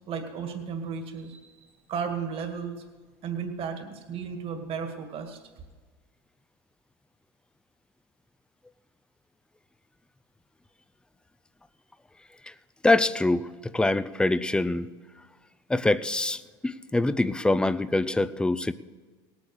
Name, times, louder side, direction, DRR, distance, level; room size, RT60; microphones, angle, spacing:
voice 1, 0.1-2.8 3.2-5.4, right 6 dB, 45° right, 5 dB, 2.1 m, -34 dB
voice 2, 12.8-14.9 15.7-18.7, left 2 dB, 5° left, 15 dB, 0.5 m, -24 dB
18.0 x 8.4 x 6.5 m, 1.4 s
supercardioid pair, 100°, 13 cm